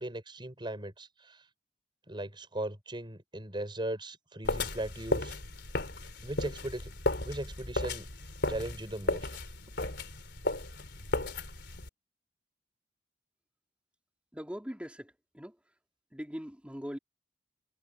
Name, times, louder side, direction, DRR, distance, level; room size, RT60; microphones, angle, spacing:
voice 1, 0.0-1.4 2.1-5.3 6.2-6.9 7.2-8.1 8.5-9.3, right 1 dB, 25° right, 5.9 m, -38 dB
sound 1, 4.4-11.9, left 2 dB, 65° left, 4.1 m, -34 dB
voice 2, 14.3-15.6 16.1-17.0, equal, 5° right, 3.6 m, -41 dB
head